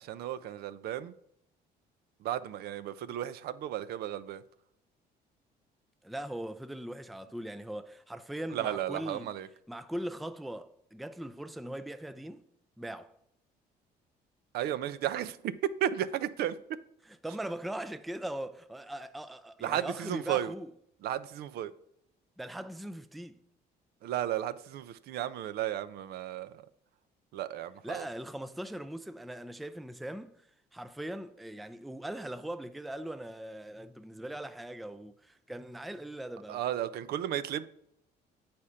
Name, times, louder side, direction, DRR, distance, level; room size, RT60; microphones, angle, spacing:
voice 1, 0.0-1.1 2.2-4.4 8.5-9.5 14.5-16.8 19.6-20.5 21.0-21.7 24.0-26.6 27.3-28.1 36.5-37.6, right 11 dB, 70° right, 0.5 m, -34 dB
voice 2, 6.0-9.3 9.7-12.4 12.8-13.1 17.1-20.7 22.4-23.4 27.8-30.5 30.7-36.6, right 1 dB, ahead, 0.3 m, -40 dB
8.4 x 4.3 x 4.9 m
cardioid pair, 110°, 17 cm